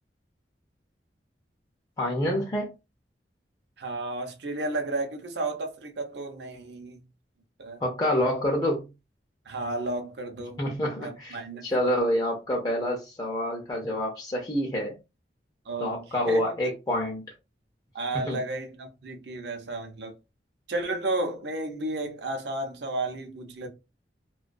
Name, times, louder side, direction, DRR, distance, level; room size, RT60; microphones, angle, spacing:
voice 1, 2.0-2.7 7.8-8.9 10.6-14.9 15.8-17.2 18.1-18.4, equal, 20° left, 0.4 m, -27 dB
voice 2, 3.8-7.0 7.6-7.8 9.5-10.6 11.0-11.7 15.7-16.4 17.9-20.1 20.7-23.7, right 2 dB, 70° right, 0.6 m, -32 dB
2.2 x 2.2 x 2.5 m
head